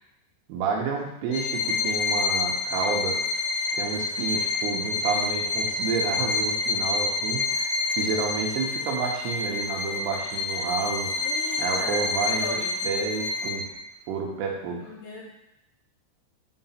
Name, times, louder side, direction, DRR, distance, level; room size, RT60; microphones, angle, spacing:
voice 1, 0.5-3.2 3.7-11.3 11.6-12.6 12.8-13.6 14.1-14.9, right 5 dB, 75° right, -1 dB, 3.3 m, -30 dB
Bowed string instrument, 1.3-13.8, left 3 dB, 80° left, 3.1 m, -28 dB
voice 2, 11.2-12.7 14.7-15.4, left 3 dB, 65° left, -7 dB, 3.4 m, -38 dB
8.8 x 3.3 x 5.8 m, 0.83 s
omnidirectional pair, 5.9 m